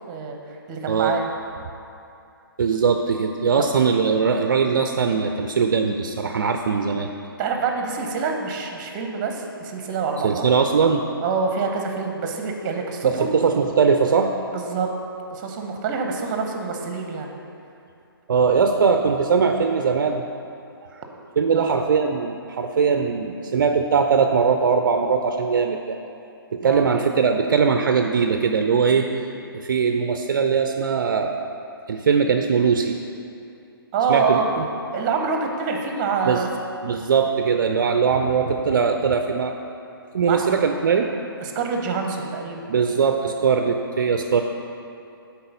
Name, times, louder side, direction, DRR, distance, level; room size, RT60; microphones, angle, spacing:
voice 1, 0.1-0.4 0.7-1.2 7.4-10.5 11.2-13.3 14.5-14.9 15.3-17.3 21.5-21.8 26.6-26.8 33.9-34.5 34.9-36.5 40.2-40.4 41.4-42.7, right 5 dB, 25° right, 3 dB, 0.7 m, -26 dB
voice 2, 2.6-7.1 10.2-11.0 13.0-14.3 18.3-20.2 20.9-21.0 21.4-26.0 26.5-29.1 29.5-31.3 31.9-33.0 34.1-34.6 36.3-36.5 36.8-39.5 40.1-41.1 42.7-44.4, right 5 dB, 55° right, 5 dB, 0.4 m, -20 dB
7.8 x 4.2 x 5.3 m, 2.6 s
figure-of-eight pair, 130°, 13 cm